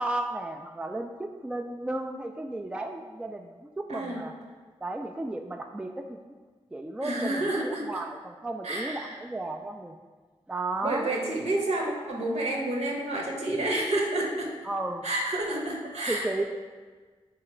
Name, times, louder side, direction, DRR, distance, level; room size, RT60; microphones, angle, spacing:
voice 1, 0.0-4.3 4.8-6.4 6.7-10.0 10.5-11.1 14.6-15.1 16.1-16.4, right 2 dB, 10° right, 4 dB, 0.3 m, -34 dB
voice 2, 3.9-4.2 7.0-8.0 8.6-9.2 10.8-14.5 15.0-16.4, right 1 dB, 65° right, -1 dB, 1.0 m, -29 dB
3.7 x 2.9 x 4.3 m, 1.4 s
supercardioid pair, 40°, 12 cm